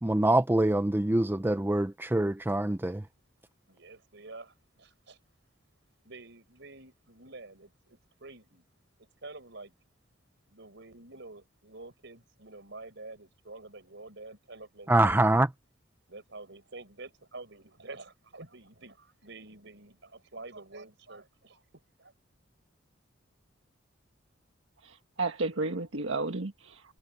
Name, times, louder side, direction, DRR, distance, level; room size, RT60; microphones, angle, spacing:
voice 1, 0.0-3.0 14.9-15.5, right 1 dB, 10° right, 0.5 m, -25 dB
voice 2, 3.7-5.2 6.0-8.6 9.0-9.7 10.5-15.4 16.1-21.6 22.0-22.1, right 3 dB, 65° right, 7.1 m, -48 dB
voice 3, 24.8-27.0, right 3 dB, 85° right, 1.5 m, -33 dB
head